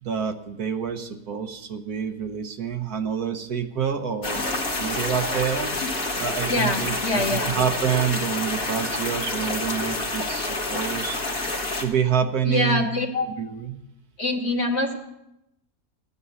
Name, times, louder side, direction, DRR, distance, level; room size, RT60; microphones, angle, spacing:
voice 1, 0.0-4.4 4.8-5.7 6.2-11.2 11.8-12.9 13.4-13.8, right 8 dB, 70° right, 7 dB, 1.4 m, -27 dB
sound 1, 4.2-11.8, left 2 dB, 65° left, 2.4 m, -28 dB
voice 2, 6.5-7.5 12.5-13.3 14.2-14.9, left 2 dB, 45° left, 2 dB, 1.8 m, -24 dB
15.0 x 9.7 x 6.9 m, 0.88 s
omnidirectional pair, 1.7 m